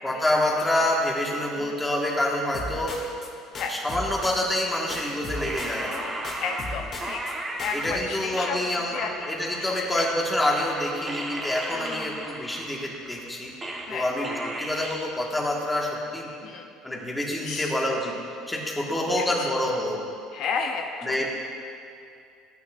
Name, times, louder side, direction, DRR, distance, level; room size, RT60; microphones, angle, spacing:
voice 1, 0.0-3.0 3.7-6.1 7.7-9.0 9.3-13.5 13.9-16.3 16.8-18.1 18.5-20.0 21.0-21.3, left 1 dB, 10° left, -2 dB, 1.5 m, -27 dB
sound 1, 2.5-3.3 3.5-4.6 4.9-6.0 6.2-7.3 7.6-7.9, left 2 dB, 40° left, 1.6 m, -36 dB
sound 2, 5.4-7.9 8.3-9.7 10.0-14.0 14.2-15.1, right 1 dB, 20° right, 1.1 m, -35 dB
voice 2, 5.8-6.1 6.4-7.2 7.6-8.6 8.9-10.0 11.7-12.2 13.9-14.1 16.4-16.7 17.4-17.8 18.9-19.5 20.3-21.3, left 5 dB, 60° left, 3 dB, 0.6 m, -33 dB
14.0 x 9.2 x 2.5 m, 2.4 s
supercardioid pair, 110°, 0 cm